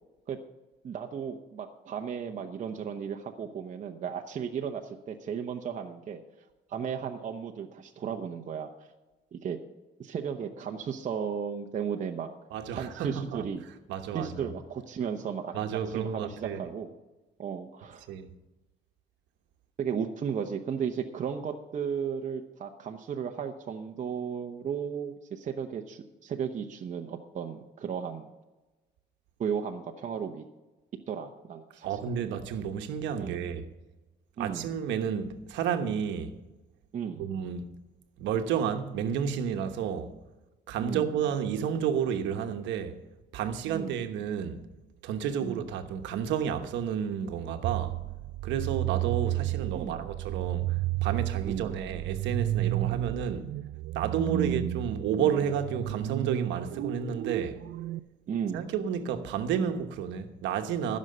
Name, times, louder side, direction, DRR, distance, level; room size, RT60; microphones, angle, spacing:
voice 1, 0.8-6.2 6.7-8.9 9.3-9.6 10.0-12.3 12.7-13.6 14.1-15.5 15.9-17.0 17.4-18.1 19.8-28.3 29.4-30.5 31.1-32.0 33.2-33.3 34.4-34.7 36.9-37.2 40.8-41.1 43.7-44.0 45.4-45.6 49.7-50.1 51.5-51.7 52.9-53.0 54.3-54.5 58.3-58.7, right 7 dB, 45° right, 0.9 m, -35 dB
voice 2, 12.5-13.4 13.9-14.5 15.5-16.6 18.1-18.3 31.8-33.7 34.4-36.4 37.2-37.7 38.2-40.1 40.7-42.9 43.3-44.6 45.0-48.0 48.4-53.5 53.9-57.6 58.5-61.0, right 8 dB, 90° right, 1.1 m, -31 dB
sound 1, 47.6-58.0, right 16 dB, 70° right, 0.4 m, -32 dB
15.0 x 6.4 x 6.7 m
cardioid pair, 110°, 18 cm